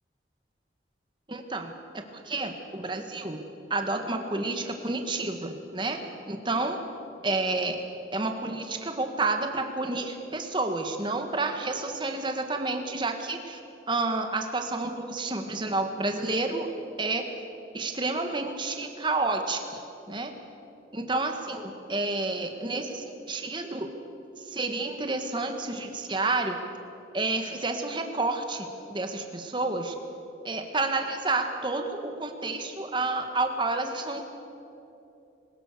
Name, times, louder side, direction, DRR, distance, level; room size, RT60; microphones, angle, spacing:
voice 1, 1.3-3.4 3.7-6.0 6.3-6.8 7.2-7.8 8.1-13.6 13.9-16.7 17.0-17.3 17.7-19.8 20.1-20.3 20.9-23.9 24.5-26.6 27.1-30.0 30.5-34.2, right 3 dB, 25° right, 5 dB, 1.7 m, -30 dB
22.0 x 20.0 x 6.8 m, 2.8 s
head